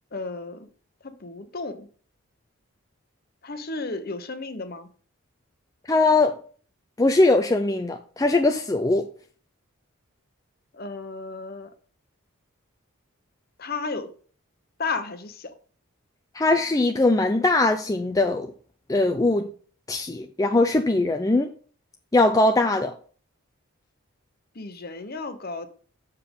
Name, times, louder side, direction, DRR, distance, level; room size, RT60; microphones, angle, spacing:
voice 1, 0.1-0.7 1.0-1.9 3.4-4.9 10.7-11.7 13.6-14.1 14.8-15.5 24.5-25.7, left 3 dB, 45° left, 0.9 m, -33 dB
voice 2, 5.9-6.4 7.0-9.1 16.3-18.5 18.9-19.5 19.9-21.5 22.1-22.9, left 2 dB, 15° left, 0.4 m, -21 dB
7.0 x 6.7 x 3.6 m
head